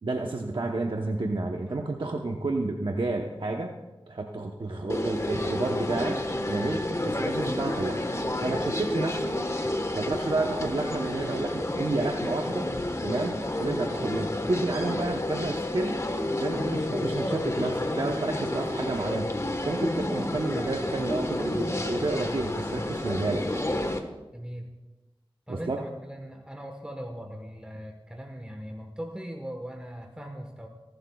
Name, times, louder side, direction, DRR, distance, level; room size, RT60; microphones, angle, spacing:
voice 1, 0.0-3.7 4.1-8.0 8.4-9.3 9.9-12.7 13.0-16.0 16.4-19.3 19.6-23.5 25.5-25.8, right 2 dB, 60° right, 1 dB, 1.0 m, -30 dB
sound 1, 4.9-24.0, left 1 dB, 30° left, 1.3 m, -30 dB
voice 2, 24.3-24.7 25.5-30.7, equal, 10° right, 3 dB, 1.3 m, -40 dB
26.0 x 12.0 x 2.4 m, 1.1 s
wide cardioid pair, 65°, 9 cm